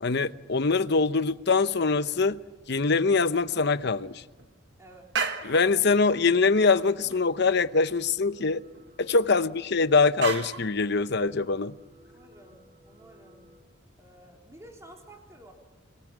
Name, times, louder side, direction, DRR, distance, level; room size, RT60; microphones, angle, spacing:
voice 1, 0.0-2.4 2.7-4.2 5.4-8.6 9.0-11.7, left 4 dB, 55° left, 0.8 m, -23 dB
sound 1, 3.5-3.6 3.8-4.5 4.9-5.8 6.1-6.2 6.4-7.3 7.5-7.6 7.9-8.0 8.7-9.7 10.2-10.7, right 5 dB, 60° right, 1.8 m, -34 dB
voice 2, 4.8-5.1 9.3-9.5 12.1-13.5 14.0-15.5, right 1 dB, 15° right, 3.5 m, -51 dB
sound 2, 7.7-13.6, left 1 dB, 30° right, 6.1 m, -57 dB
29.0 x 21.5 x 7.5 m
head